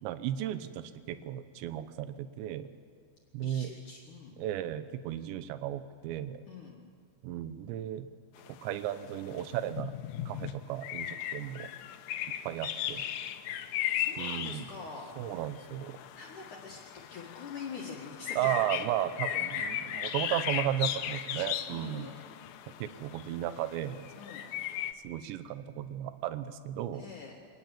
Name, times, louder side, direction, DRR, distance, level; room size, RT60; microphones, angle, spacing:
voice 1, 0.0-2.7 3.3-3.7 4.4-6.4 7.2-8.1 8.6-9.9 10.3-11.7 12.5-13.1 14.2-14.7 15.2-16.0 18.4-22.1 22.8-24.1 25.0-27.1, right 12 dB, 75° right, 12 dB, 3.0 m, -35 dB
voice 2, 3.4-4.4 6.5-6.8 13.9-15.2 16.1-18.5 18.8-18.9 19.8-20.0 21.7-22.2 24.2-24.5 26.9-27.4, left 5 dB, 55° left, -1 dB, 2.7 m, -45 dB
sound 1, 8.4-24.9, left 11 dB, 85° left, 2.0 m, -37 dB
25.0 x 19.0 x 7.4 m, 2.1 s
omnidirectional pair, 5.5 m